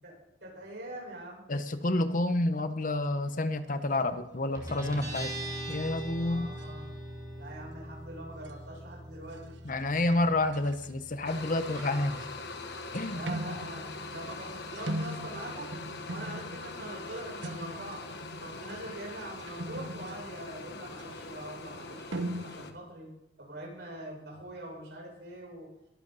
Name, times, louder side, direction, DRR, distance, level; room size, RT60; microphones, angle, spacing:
voice 1, 0.4-1.4 6.2-6.9 7.4-9.6 13.1-15.7 16.1-18.0 18.4-22.1 22.4-23.1 23.4-25.7, right 1 dB, 70° right, -2 dB, 7.3 m, -43 dB
voice 2, 1.5-5.3 5.7-6.5 9.6-12.3 12.9-13.2, left 2 dB, 45° left, 10 dB, 0.9 m, -29 dB
sound 1, 3.9-4.3 4.7-6.1 6.6-6.8 8.4-8.5 9.3-10.0 10.5-10.9 11.2-22.5, right 1 dB, 90° right, 1.2 m, -42 dB
Guitar, 4.5-21.7, right 1 dB, 20° right, 4.1 m, -45 dB
sound 2, 11.3-22.7, left 3 dB, 60° left, 1.4 m, -42 dB
22.0 x 11.0 x 4.1 m, 0.85 s
head